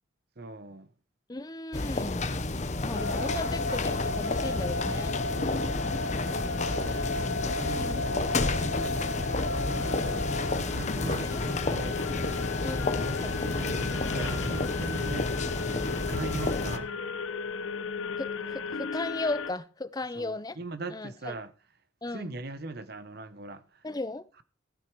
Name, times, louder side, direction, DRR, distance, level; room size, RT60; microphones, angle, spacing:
voice 1, 0.4-0.9 6.4-7.3 7.6-12.0 12.8-15.6 15.9-17.0 20.2-21.5 22.1-23.8, right 3 dB, 50° right, 0.8 m, -41 dB
voice 2, 1.3-2.3 2.8-5.2 7.8-8.0 10.9-11.4 12.6-13.3 13.8-14.1 18.2-20.6 20.9-21.3 22.0-22.3 23.8-24.2, left 2 dB, 20° left, 0.6 m, -36 dB
sound 1, 1.7-16.8, left 2 dB, 35° left, 0.9 m, -31 dB
sound 2, 2.9-19.5, left 4 dB, 85° left, 0.8 m, -34 dB
sound 3, 3.2-16.5, equal, 75° right, 2.5 m, -50 dB
15.0 x 9.3 x 4.6 m
head